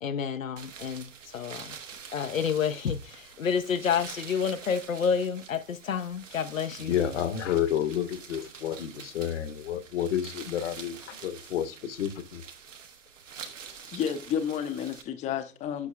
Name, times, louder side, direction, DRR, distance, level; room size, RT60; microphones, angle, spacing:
voice 1, 0.0-1.8 2.1-7.0, left 7 dB, 80° left, 0.6 m, -29 dB
sound 1, 0.6-15.0, right 6 dB, 70° right, 1.2 m, -46 dB
voice 2, 6.8-12.4, left 9 dB, 60° left, 1.0 m, -30 dB
voice 3, 13.9-15.9, left 8 dB, 20° left, 0.5 m, -31 dB
8.4 x 6.2 x 2.2 m
figure-of-eight pair, 95°, 40 cm